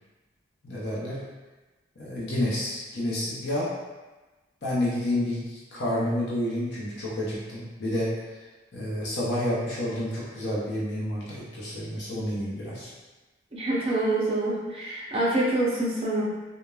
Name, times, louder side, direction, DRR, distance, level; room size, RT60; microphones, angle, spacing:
voice 1, 0.6-1.2 2.0-3.7 4.6-8.1 8.7-12.9, left 1 dB, 65° left, -7 dB, 0.7 m, -29 dB
voice 2, 13.5-16.2, right 1 dB, 30° right, -6 dB, 0.5 m, -26 dB
3.0 x 2.1 x 2.3 m, 1.2 s
head